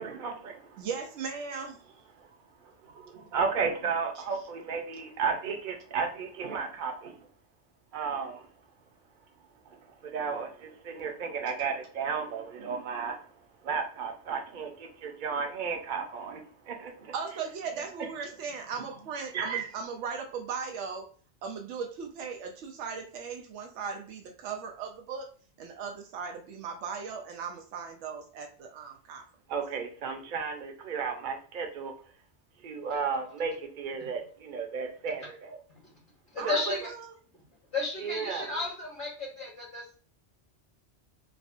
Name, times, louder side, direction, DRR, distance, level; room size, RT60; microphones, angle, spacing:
voice 1, 0.0-0.9 2.2-2.3 2.6-7.3 7.9-8.5 9.7-13.3 13.6-17.1 18.8-18.9 19.3-19.7 29.5-31.9 32.6-35.6 36.4-36.8 38.0-38.5, right 5 dB, 50° right, 4 dB, 0.7 m, -34 dB
voice 2, 0.8-1.8 17.1-21.1 21.4-25.3 25.6-29.2 36.4-37.0, right 6 dB, 90° right, 3 dB, 0.9 m, -38 dB
voice 3, 36.3-36.8 37.7-39.9, left 2 dB, 50° left, -5 dB, 1.2 m, -34 dB
3.5 x 2.4 x 2.4 m, 0.42 s
omnidirectional pair, 1.2 m